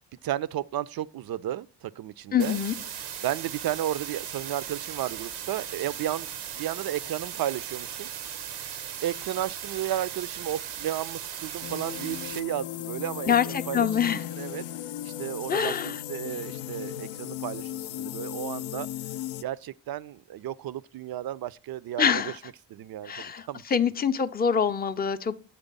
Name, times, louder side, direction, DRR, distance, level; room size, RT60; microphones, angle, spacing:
voice 1, 0.2-2.6 3.2-6.3 6.6-8.1 9.0-14.6 15.0-18.9 19.4-22.3 22.7-23.6, right 12 dB, 50° right, 0.5 m, -33 dB
voice 2, 2.3-2.7 13.3-14.2 15.5-16.0 22.0-22.3 23.0-23.5 23.7-25.4, left 7 dB, 20° left, 0.6 m, -25 dB
sound 1, 2.4-12.4, right 9 dB, 90° right, 0.9 m, -37 dB
sound 2, 11.6-19.4, left 13 dB, 70° left, 0.5 m, -36 dB
8.2 x 3.3 x 5.2 m
supercardioid pair, 50°, 48 cm